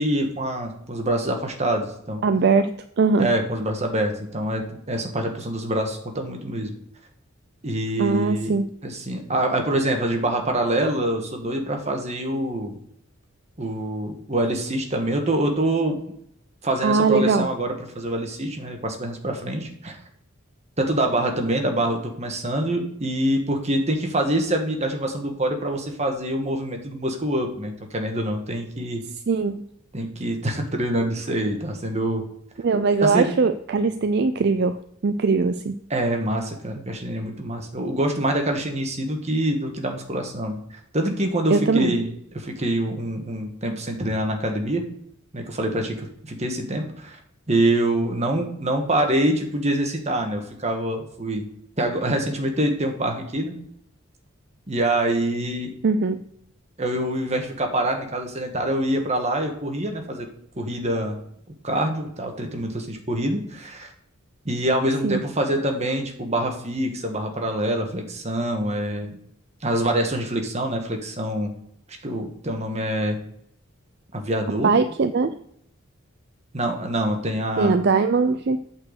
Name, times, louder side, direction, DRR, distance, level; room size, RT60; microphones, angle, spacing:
voice 1, 0.0-2.2 3.2-6.7 7.6-8.5 8.8-12.8 13.6-16.0 16.6-20.0 20.8-29.0 29.9-32.2 33.0-33.3 35.9-40.6 40.9-44.8 45.3-47.2 47.5-51.5 51.8-53.5 54.7-55.7 56.8-60.3 60.6-61.2 61.6-63.9 64.4-69.2 69.6-71.5 72.0-73.2 74.1-74.7 76.5-77.8, right 1 dB, 35° right, 4 dB, 1.5 m, -25 dB
voice 2, 2.2-3.3 8.0-8.6 16.8-17.5 29.3-29.6 32.6-34.8 35.0-35.7 41.5-41.9 55.8-56.2 65.0-65.2 74.6-75.4 77.6-78.6, right 4 dB, 55° right, 10 dB, 0.4 m, -20 dB
8.5 x 4.5 x 6.6 m, 0.72 s
head